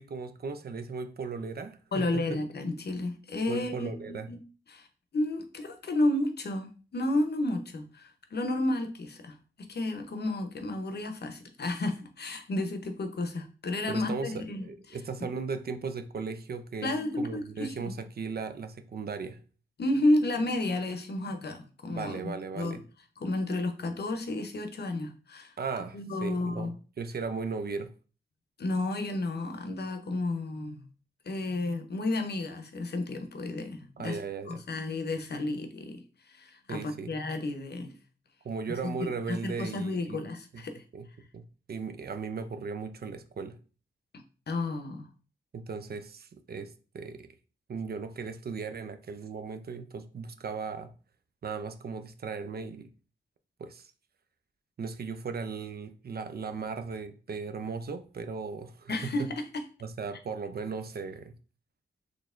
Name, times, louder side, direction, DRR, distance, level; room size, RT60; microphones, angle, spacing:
voice 1, 0.0-2.4 3.5-4.3 13.9-19.4 21.9-22.8 25.6-27.9 34.0-34.6 36.7-37.1 38.4-40.3 40.5-40.6 40.9-41.1 41.3-43.6 45.5-47.3 47.7-50.9 51.4-52.9 53.6-53.9 54.8-58.9 59.8-61.3, right 5 dB, 55° right, 0.5 m, -37 dB
voice 2, 1.9-4.4 4.7-4.9 5.1-9.4 9.7-14.7 16.8-17.9 19.8-22.8 23.2-25.5 25.9-26.7 28.6-30.9 31.3-34.2 34.5-36.0 36.3-37.9 38.7-40.8 44.5-45.1 58.9-59.3, left 2 dB, 55° left, 0.7 m, -32 dB
4.0 x 3.2 x 2.5 m
cardioid pair, 60°, 20 cm